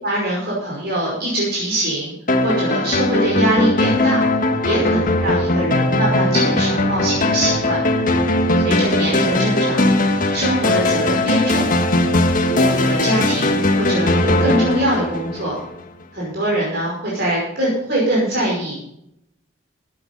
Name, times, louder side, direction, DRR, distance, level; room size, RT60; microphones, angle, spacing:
voice 1, 0.0-2.1 2.4-4.2 4.6-7.8 8.5-9.9 10.3-11.7 12.3-15.5 16.1-18.8, right 1 dB, 55° right, -4 dB, 5.4 m, -22 dB
sound 1, 2.3-15.8, left 1 dB, 45° left, 1.5 m, -19 dB
15.5 x 9.5 x 5.4 m, 0.78 s
head